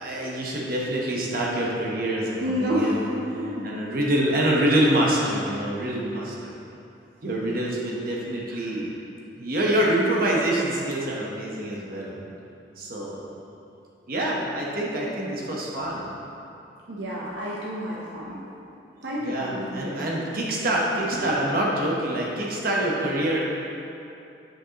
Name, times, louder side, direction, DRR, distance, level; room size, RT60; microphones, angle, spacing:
voice 1, 0.0-3.1 3.6-6.6 7.2-8.9 9.4-12.2 12.8-13.2 14.1-16.0 19.1-23.4, right 1 dB, 50° right, -3 dB, 1.1 m, -26 dB
voice 2, 2.4-3.0 3.3-3.8 8.5-8.7 16.9-18.4 19.0-20.0 21.1-21.3, equal, 70° right, -5 dB, 0.8 m, -30 dB
8.8 x 5.4 x 3.0 m, 2.7 s
head